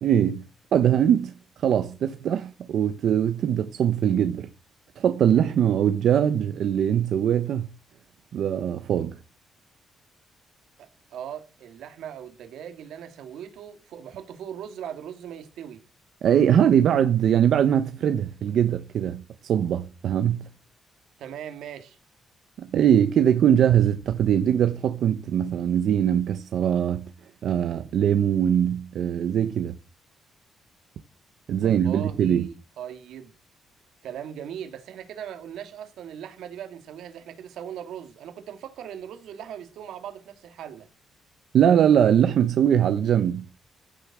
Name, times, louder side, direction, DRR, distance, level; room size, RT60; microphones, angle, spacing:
voice 1, 0.0-0.4 0.7-1.3 1.6-4.5 5.0-7.7 8.3-9.2 16.2-20.4 22.6-27.1 27.4-29.8 31.5-32.5 41.5-43.5, right 9 dB, 60° right, 0.9 m, -22 dB
voice 2, 10.8-15.8 21.2-22.0 31.6-33.3 34.0-40.9, right 9 dB, 85° right, 2.8 m, -39 dB
15.5 x 7.0 x 6.2 m
cardioid pair, 170°, 0 cm